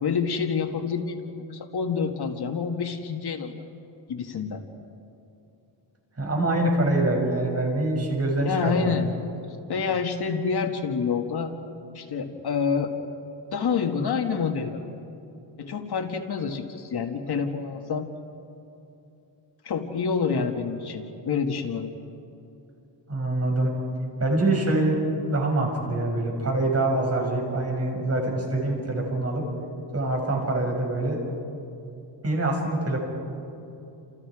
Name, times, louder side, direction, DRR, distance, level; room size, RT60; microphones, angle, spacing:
voice 1, 0.0-3.6 4.1-4.6 8.4-9.1 9.7-11.5 11.9-12.9 13.5-14.8 15.6-18.1 19.6-21.9, left 6 dB, 55° left, 4 dB, 1.9 m, -27 dB
voice 2, 6.2-9.0 23.1-23.7 24.2-29.4 29.9-31.2 32.2-33.0, right 2 dB, 30° right, 0 dB, 6.5 m, -25 dB
29.5 x 28.5 x 4.9 m, 2.8 s
cardioid pair, 105°, 47 cm